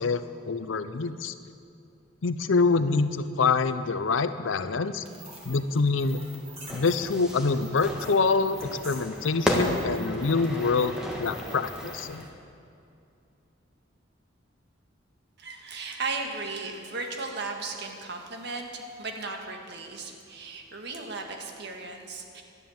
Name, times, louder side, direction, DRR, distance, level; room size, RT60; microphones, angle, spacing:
voice 1, 0.0-1.3 2.2-5.0 5.5-6.2 6.7-12.3, left 4 dB, 75° left, 12 dB, 0.6 m, -26 dB
sound 1, 5.1-12.3, right 2 dB, 35° right, 3.1 m, -47 dB
Fire / Fireworks, 6.7-12.3, equal, 5° right, 1.5 m, -33 dB
voice 2, 15.4-22.4, right 3 dB, 60° right, 3 dB, 1.6 m, -36 dB
12.5 x 10.5 x 7.2 m, 2.5 s
head